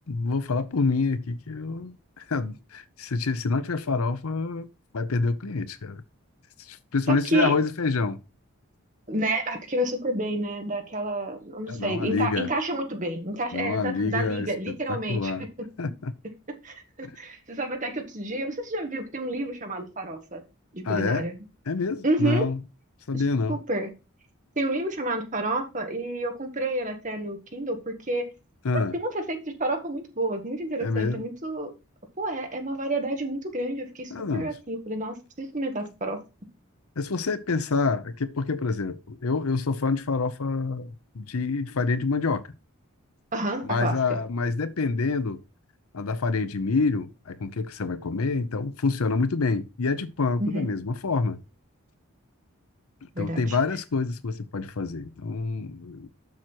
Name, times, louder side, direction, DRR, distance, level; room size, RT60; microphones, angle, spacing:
voice 1, 0.1-4.7 4.9-6.0 6.6-8.2 11.7-12.5 13.5-14.5 14.9-15.5 15.8-16.1 17.0-17.1 20.8-21.3 21.7-22.6 23.1-23.6 28.6-29.0 30.8-31.2 34.1-34.5 37.0-42.4 43.6-45.4 45.9-51.4 53.2-56.1, left 4 dB, 80° left, 0.7 m, -27 dB
voice 2, 7.1-7.5 9.1-15.3 16.6-20.4 20.7-21.3 22.0-22.5 23.5-23.9 24.5-28.3 28.7-31.7 32.2-36.2 43.3-44.0 50.4-50.7 53.1-53.6, right 1 dB, 35° right, 1.5 m, -29 dB
7.2 x 6.1 x 4.4 m
head